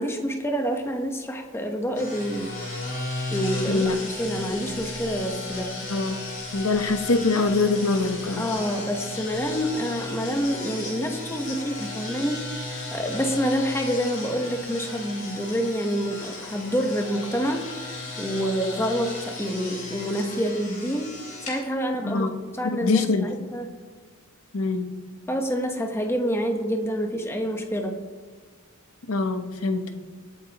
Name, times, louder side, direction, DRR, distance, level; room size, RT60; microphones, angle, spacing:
voice 1, 0.0-2.6 3.3-5.7 8.4-21.1 21.4-22.2 22.5-23.7 25.3-27.9, equal, 10° left, 4 dB, 1.1 m, -27 dB
sound 1, 1.9-21.6, left 2 dB, 35° left, 4.3 m, -35 dB
voice 2, 6.5-8.4 22.0-22.3 22.6-23.3 24.5-25.0 29.1-29.9, left 3 dB, 70° left, 7 dB, 1.0 m, -24 dB
22.5 x 8.6 x 3.0 m, 1.5 s
head